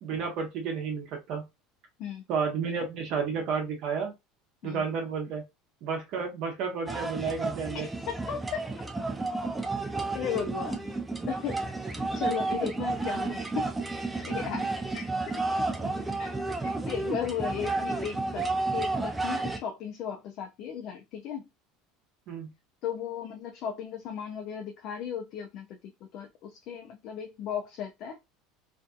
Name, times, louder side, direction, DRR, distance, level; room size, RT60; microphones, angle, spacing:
voice 1, 0.0-1.5 2.3-4.1 4.6-5.4 5.8-7.9 15.8-16.0 22.3-22.5, right 5 dB, 55° right, 0.8 m, -31 dB
sound 1, 6.9-19.6, right 3 dB, 10° right, 0.4 m, -31 dB
voice 2, 7.7-8.6 10.1-10.9 11.3-13.7 14.2-15.4 16.2-16.3 16.6-21.5 22.8-28.2, left 8 dB, 55° left, 0.4 m, -36 dB
2.6 x 2.4 x 2.3 m
supercardioid pair, 130°, 0 cm